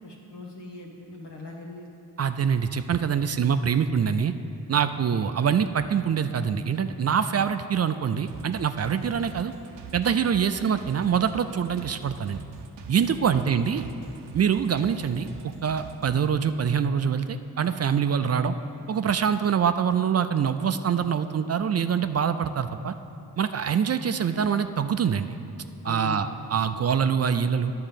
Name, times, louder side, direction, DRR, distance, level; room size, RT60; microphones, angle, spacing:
voice 1, 0.0-1.9 13.1-13.4 25.8-26.4, left 2 dB, 80° left, -1 dB, 1.4 m, -40 dB
voice 2, 2.2-4.3 4.7-9.5 9.9-12.4 12.9-13.9 14.3-15.3 15.6-18.5 18.9-22.9 23.4-25.4 25.8-27.7, right 7 dB, 40° right, 10 dB, 0.4 m, -24 dB
sound 1, 8.3-16.3, right 5 dB, 85° right, 0.6 m, -44 dB
10.0 x 3.8 x 7.3 m, 2.7 s
cardioid pair, 50°, 40 cm